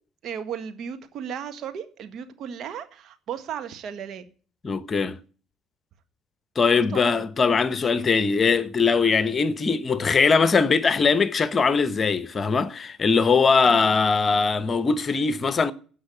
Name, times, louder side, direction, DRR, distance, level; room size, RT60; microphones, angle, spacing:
voice 1, 0.2-4.2 6.8-7.3 13.6-14.1, right 8 dB, 55° right, 1.6 m, -35 dB
voice 2, 4.6-5.2 6.6-15.7, left 5 dB, 35° left, 1.0 m, -21 dB
16.5 x 5.7 x 8.5 m
figure-of-eight pair, 50°, 0 cm